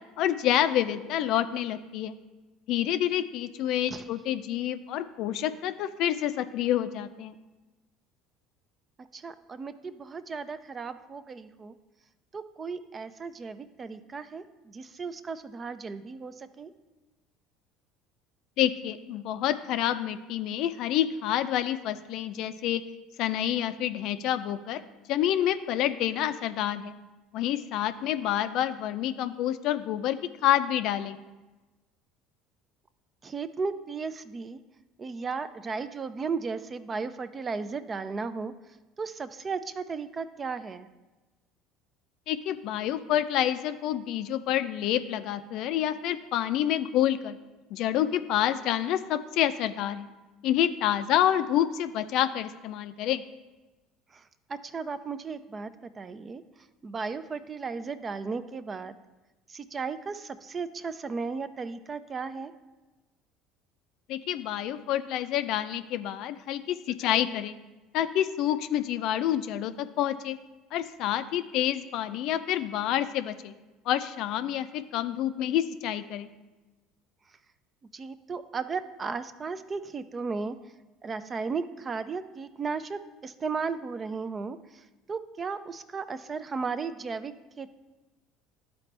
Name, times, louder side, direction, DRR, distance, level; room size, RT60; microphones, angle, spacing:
voice 1, 0.2-2.2 2.7-7.3 18.6-22.8 23.2-24.8 25.1-26.9 27.3-31.2 42.3-47.4 47.7-50.1 50.4-53.2 64.1-67.6 67.9-70.4 70.7-73.5 73.9-76.3, left 11 dB, 65° left, 11 dB, 0.4 m, -28 dB
voice 2, 9.0-11.7 12.3-16.7 33.2-34.6 35.0-38.5 39.0-40.9 54.1-54.2 54.5-56.4 56.8-58.9 59.5-62.5 77.9-80.6 81.0-84.8 85.1-87.8, right 4 dB, 30° right, 12 dB, 0.4 m, -35 dB
11.5 x 4.1 x 3.3 m, 1.1 s
hypercardioid pair, 75°, 0 cm